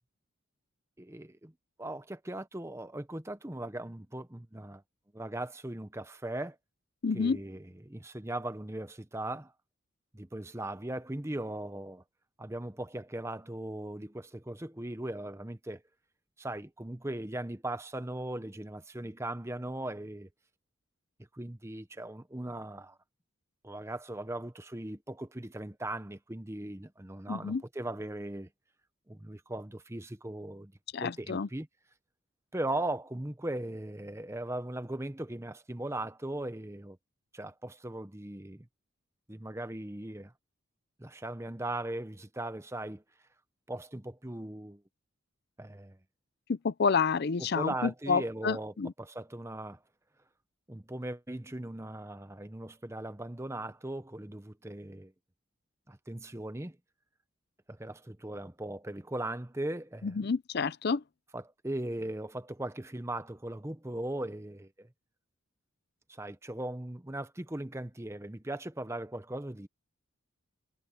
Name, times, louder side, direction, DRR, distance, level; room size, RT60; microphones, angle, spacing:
voice 1, 1.0-1.5 1.8-4.8 5.1-6.6 7.1-9.5 10.1-12.0 12.4-15.8 16.4-20.3 21.3-23.0 23.6-28.5 29.1-30.7 31.0-31.7 32.5-37.0 37.3-38.7 39.3-40.3 41.0-43.0 43.7-44.8 45.6-46.0 47.4-49.8 50.7-55.1 55.9-56.8 57.7-60.3 61.3-64.9 66.1-69.7, right 1 dB, 15° right, 0.8 m, -38 dB
voice 2, 7.0-7.4 27.3-27.6 30.9-31.5 46.5-48.9 60.0-61.0, left 5 dB, 50° left, 0.5 m, -29 dB
head